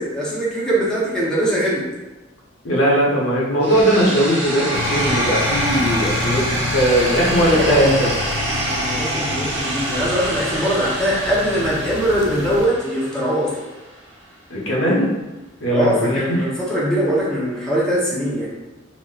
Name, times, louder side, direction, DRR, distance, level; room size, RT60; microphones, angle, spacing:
voice 1, 0.0-1.9 7.5-7.9 8.6-13.6 15.7-18.5, equal, 5° left, -8 dB, 0.6 m, -21 dB
voice 2, 2.6-8.1 14.5-15.1 15.6-16.4, equal, 85° left, -4 dB, 0.8 m, -19 dB
sound 1, 3.6-13.6, right 1 dB, 65° right, 0.9 m, -25 dB
sound 2, 4.7-12.7, left 3 dB, 60° left, 0.3 m, -29 dB
4.0 x 2.0 x 2.3 m, 1.1 s
head